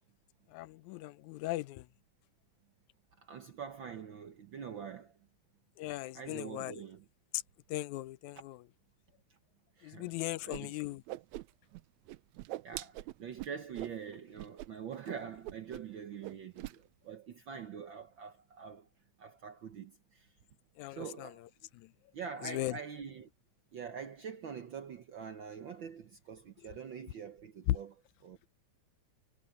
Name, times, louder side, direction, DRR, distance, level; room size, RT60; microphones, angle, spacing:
voice 1, 0.5-1.9 5.8-6.8 7.7-8.6 9.8-11.0 20.8-21.3 21.8-21.9 22.4-22.8 27.7-27.8, left 16 dB, 85° left, 2.0 m, -37 dB
voice 2, 3.2-5.1 6.1-7.0 9.8-10.1 10.4-10.8 12.6-18.9 19.2-20.3 20.9-21.4 22.1-23.3 23.7-27.9 28.2-28.4, right 7 dB, 65° right, 1.2 m, -45 dB
Whoosh swoosh swish, 10.5-10.6 10.9-11.8 12.1-14.0 14.4-14.7 14.9-15.1 15.4-16.0 16.2-16.8, right 16 dB, 80° right, 1.9 m, -43 dB
omnidirectional pair, 3.3 m